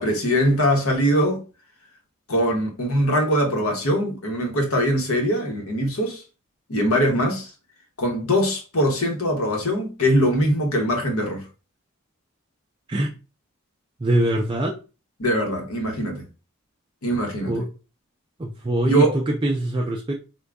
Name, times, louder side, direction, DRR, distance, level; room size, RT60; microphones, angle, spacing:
voice 1, 0.0-1.4 2.3-6.2 6.7-7.5 8.0-11.4 15.2-16.2 17.0-17.6 18.9-19.2, equal, 85° left, 1.0 m, -22 dB
voice 2, 14.0-14.8 17.5-17.7 18.4-20.2, right 1 dB, 25° right, 0.3 m, -23 dB
3.7 x 2.2 x 3.4 m
head